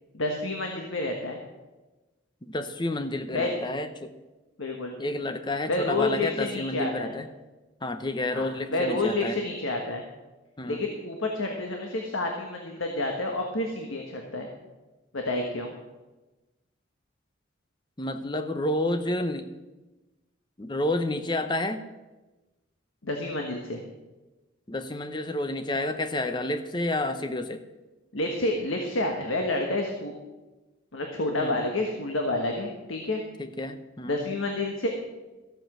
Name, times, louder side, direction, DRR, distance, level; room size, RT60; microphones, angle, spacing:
voice 1, 0.1-1.4 3.3-3.6 4.6-4.9 5.7-7.1 8.3-10.0 10.6-14.5 15.1-15.7 23.0-23.8 28.1-30.1 30.9-33.2 34.0-34.9, left 2 dB, 80° left, 2 dB, 1.4 m, -29 dB
voice 2, 2.4-4.1 5.0-7.3 7.8-9.4 10.6-10.8 18.0-19.5 20.6-21.9 24.7-27.6 31.4-31.6 33.4-34.2, left 1 dB, 20° left, 9 dB, 0.7 m, -30 dB
13.5 x 7.9 x 6.1 m, 1.1 s
head